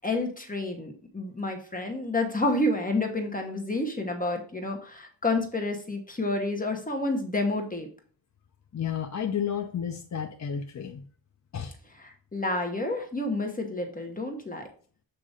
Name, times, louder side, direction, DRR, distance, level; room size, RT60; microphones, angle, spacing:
voice 1, 0.0-7.9 12.0-14.7, left 2 dB, 20° left, 3 dB, 1.2 m, -29 dB
voice 2, 8.7-11.0 11.5-11.7, left 8 dB, 40° left, 4 dB, 0.6 m, -31 dB
7.6 x 3.0 x 5.0 m, 0.43 s
wide cardioid pair, 125°, 42 cm